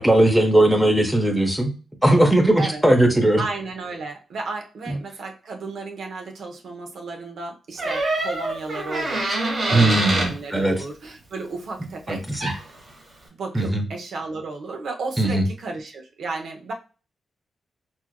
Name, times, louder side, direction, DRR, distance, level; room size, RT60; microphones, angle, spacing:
voice 1, 0.0-1.7 2.0-3.4 4.9-5.0 9.7-10.7 12.1-12.5 13.5-13.8 15.2-15.5, right 1 dB, 5° right, 4 dB, 0.6 m, -18 dB
voice 2, 3.4-9.2 9.7-12.6 13.3-16.7, right 3 dB, 70° right, 3 dB, 0.7 m, -33 dB
Door, 7.8-10.3 12.1-12.2 12.4-12.8, right 2 dB, 40° right, 1.1 m, -25 dB
4.3 x 2.4 x 2.2 m, 0.35 s
wide cardioid pair, 150°, 0 cm